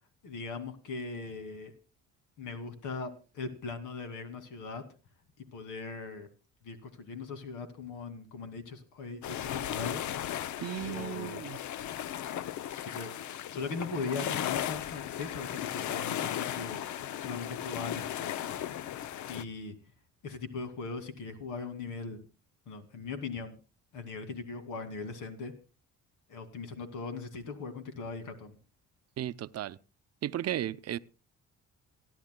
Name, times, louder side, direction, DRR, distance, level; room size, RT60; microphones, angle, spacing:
voice 1, 0.2-1.7 2.4-4.8 5.5-6.3 6.6-10.1 10.4-11.5 12.8-13.1 13.5-18.5 19.3-19.7 20.2-22.2 22.7-23.5 23.9-25.5 26.3-28.6, left 4 dB, 85° left, 2.4 m, -40 dB
sound 1, 9.2-19.4, left 11 dB, 70° left, 0.7 m, -36 dB
voice 2, 10.6-11.6 29.2-29.8 30.2-31.0, right 12 dB, 55° right, 0.6 m, -35 dB
28.0 x 10.5 x 2.2 m
cardioid pair, 90°, 30 cm